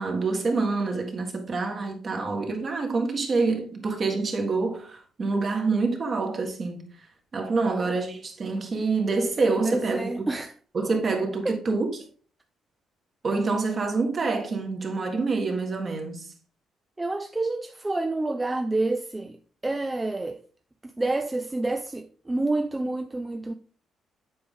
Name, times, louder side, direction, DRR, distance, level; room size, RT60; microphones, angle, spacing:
voice 1, 0.0-6.9 7.3-10.3 10.7-11.9 13.2-16.3, right 3 dB, 40° right, 1.6 m, -26 dB
voice 2, 9.6-10.5 11.4-11.6 17.0-19.4 19.6-20.4 20.8-23.5, right 2 dB, 15° right, 0.4 m, -28 dB
7.8 x 4.8 x 3.6 m
cardioid pair, 120°, 0 cm